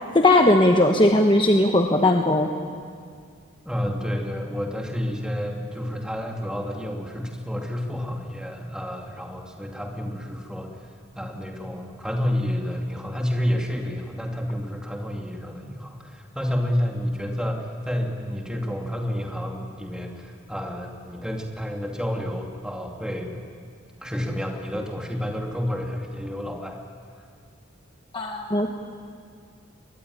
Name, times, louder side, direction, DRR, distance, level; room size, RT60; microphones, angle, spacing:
voice 1, 0.1-2.5 28.1-28.7, left 1 dB, 25° left, 3 dB, 1.1 m, -18 dB
voice 2, 3.6-23.3 24.0-26.8 27.2-27.3, equal, 5° right, 1 dB, 2.5 m, -30 dB
23.0 x 22.0 x 9.9 m, 2.2 s
head